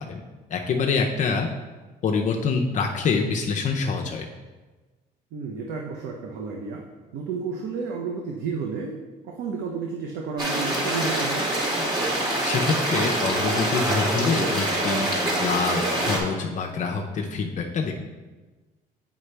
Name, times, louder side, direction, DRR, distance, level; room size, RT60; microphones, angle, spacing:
voice 1, 0.5-1.5 2.0-4.3 12.2-15.1 15.4-18.0, left 4 dB, 45° left, 1 dB, 0.6 m, -26 dB
voice 2, 5.3-6.8 7.1-8.9 9.2-11.5, right 5 dB, 80° right, 0 dB, 0.8 m, -31 dB
sound 1, 10.4-16.2, right 1 dB, 25° right, 1.8 m, -25 dB
8.0 x 5.3 x 3.3 m, 1.3 s
cardioid pair, 110°, 17 cm